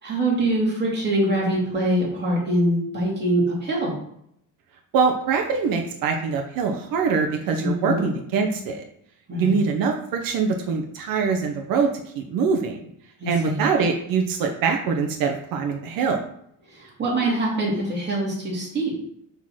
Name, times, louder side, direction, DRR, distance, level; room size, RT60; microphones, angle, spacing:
voice 1, 0.0-3.9 7.6-8.0 9.3-9.6 13.2-13.6 16.7-18.9, right 1 dB, 30° right, -5 dB, 3.0 m, -24 dB
voice 2, 4.9-8.8 9.4-11.9 12.1-12.8 13.2-16.2, right 5 dB, 90° right, 2 dB, 1.0 m, -23 dB
6.3 x 4.0 x 6.3 m, 0.72 s
cardioid pair, 155°, 33 cm